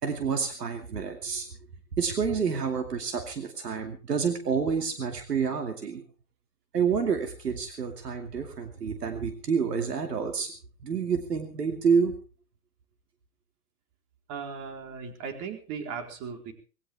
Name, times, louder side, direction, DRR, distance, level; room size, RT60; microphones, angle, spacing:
voice 1, 0.0-1.5 2.0-6.0 6.7-10.5 10.8-12.2, right 6 dB, 85° right, 5 dB, 2.5 m, -28 dB
voice 2, 14.3-16.5, right 6 dB, 45° right, 5 dB, 4.2 m, -37 dB
20.0 x 17.0 x 3.5 m, 0.36 s
hypercardioid pair, 105°, 47 cm